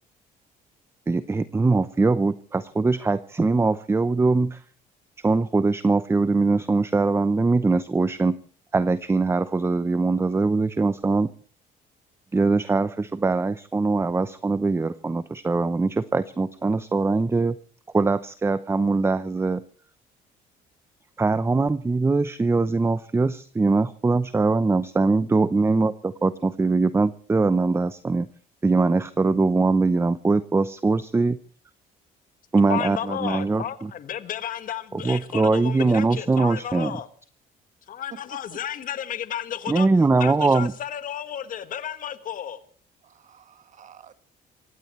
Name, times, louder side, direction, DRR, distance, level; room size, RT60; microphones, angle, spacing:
voice 1, 1.1-4.6 5.2-8.4 8.7-11.3 12.3-17.6 17.9-19.6 21.2-28.3 28.6-31.4 32.5-33.9 34.9-37.0 39.7-40.7, right 3 dB, 15° right, 0.7 m, -22 dB
voice 2, 32.7-37.1 37.9-39.9 40.2-42.6, left 10 dB, 55° left, 1.6 m, -32 dB
voice 3, 38.1-38.6 43.0-44.1, right 8 dB, 45° right, 1.6 m, -47 dB
27.5 x 16.0 x 3.2 m
cardioid pair, 110°, 17 cm